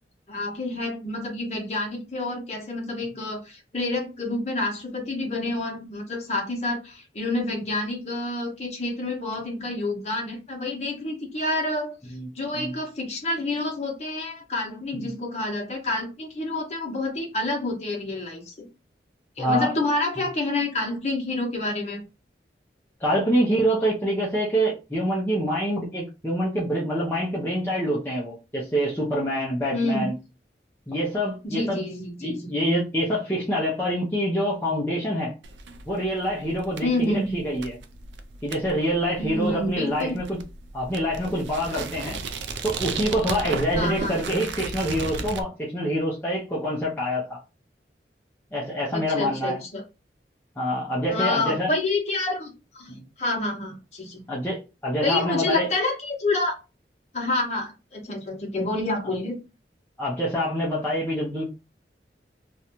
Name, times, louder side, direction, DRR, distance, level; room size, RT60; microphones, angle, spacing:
voice 1, 0.3-18.7 19.4-22.0 29.7-30.1 31.4-32.5 36.8-37.4 39.2-40.1 43.7-44.1 48.9-49.8 51.1-54.2 55.0-56.6 57.1-59.3, left 2 dB, 35° left, 0 dB, 0.8 m, -28 dB
voice 2, 19.4-19.7 23.0-30.1 30.9-31.8 32.2-35.3 35.9-37.8 38.4-40.4 40.7-42.2 42.6-47.4 48.5-49.6 50.6-51.7 52.9-53.0 54.3-55.7 60.0-61.5, equal, 10° left, -6 dB, 0.5 m, -26 dB
sound 1, 35.4-45.4, right 4 dB, 80° right, 0.4 m, -35 dB
2.5 x 2.2 x 2.9 m, 0.29 s
head